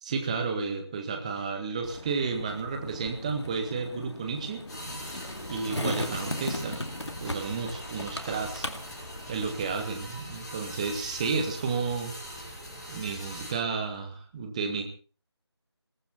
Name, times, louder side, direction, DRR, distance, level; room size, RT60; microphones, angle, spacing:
voice 1, 0.0-4.6 5.5-6.8 7.2-8.7 9.3-12.1 12.4-12.6 12.9-14.8, right 5 dB, 15° right, 5 dB, 1.7 m, -32 dB
Skateboard, 1.8-9.8, left 1 dB, 75° left, 2.3 m, -38 dB
sound 1, 4.7-13.5, equal, 5° left, 6.8 m, -42 dB
21.5 x 15.0 x 4.3 m, 0.37 s
figure-of-eight pair, 165°, 14 cm